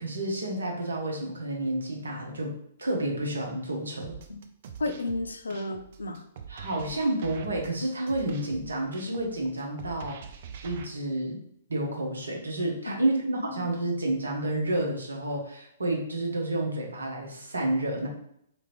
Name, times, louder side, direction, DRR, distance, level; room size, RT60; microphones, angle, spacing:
voice 1, 0.0-4.1 6.5-10.3 10.6-11.4 11.7-18.1, right 1 dB, 75° right, 0 dB, 0.8 m, -30 dB
sound 1, 4.0-10.8, right 7 dB, 50° right, 0.4 m, -44 dB
voice 2, 4.8-6.2 12.9-13.0 13.4-13.7, left 2 dB, 75° left, 8 dB, 0.4 m, -33 dB
3.0 x 2.6 x 3.0 m, 0.72 s
figure-of-eight pair, 120°, 0 cm